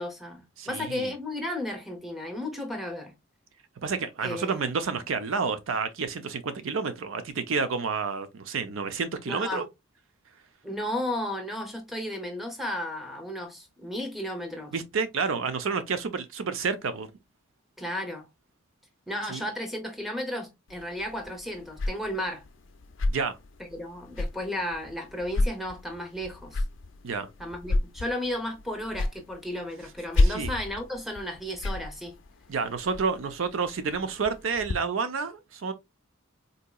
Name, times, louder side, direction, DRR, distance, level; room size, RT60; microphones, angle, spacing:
voice 1, 0.0-3.1 4.2-4.7 9.3-9.6 10.6-14.7 17.8-18.3 19.1-22.4 23.7-26.6 27.4-32.1, left 1 dB, ahead, 0.8 m, -34 dB
voice 2, 0.6-1.1 3.8-9.7 14.7-17.1 19.3-19.4 23.1-23.4 27.0-27.3 30.2-30.5 32.5-35.7, right 5 dB, 80° right, 0.5 m, -30 dB
sound 1, 20.7-34.7, left 2 dB, 70° left, 0.4 m, -32 dB
3.9 x 2.8 x 2.3 m
head